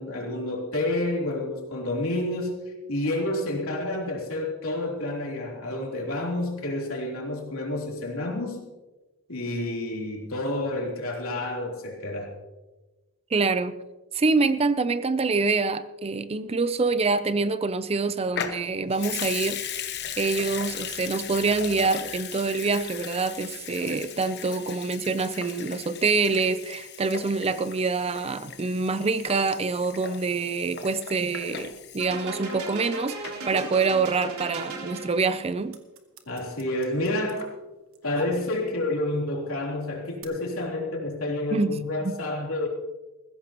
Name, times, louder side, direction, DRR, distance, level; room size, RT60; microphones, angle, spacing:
voice 1, 0.0-2.5 2.9-8.6 9.3-12.3 36.3-37.5 38.0-42.7, left 1 dB, 70° left, -1 dB, 3.5 m, -29 dB
voice 2, 13.3-13.8 14.1-19.9 20.2-35.8 41.5-42.2, right 4 dB, 30° right, 13 dB, 0.5 m, -26 dB
Water tap faucet / Sink (filling or washing) / Liquid, 18.3-32.9 33.2-33.3, left 8 dB, 50° left, 1.1 m, -37 dB
sound 1, 32.0-35.5, right 3 dB, 85° right, 3.9 m, -36 dB
sound 2, 33.5-33.9 34.3-35.0 35.2-38.8 39.6-40.2, right 3 dB, 70° right, 1.6 m, -43 dB
20.0 x 15.5 x 3.0 m, 1.2 s
head